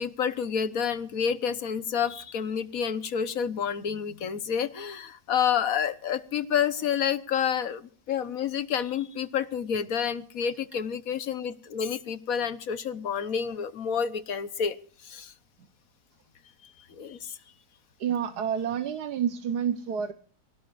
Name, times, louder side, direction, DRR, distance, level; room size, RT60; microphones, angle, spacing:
voice 1, 0.0-14.8 15.0-15.3 16.6-17.4, left 7 dB, 65° left, 13 dB, 1.5 m, -29 dB
voice 2, 18.0-20.1, right 8 dB, 80° right, 8 dB, 1.7 m, -29 dB
24.5 x 17.0 x 2.5 m, 0.43 s
omnidirectional pair, 1.7 m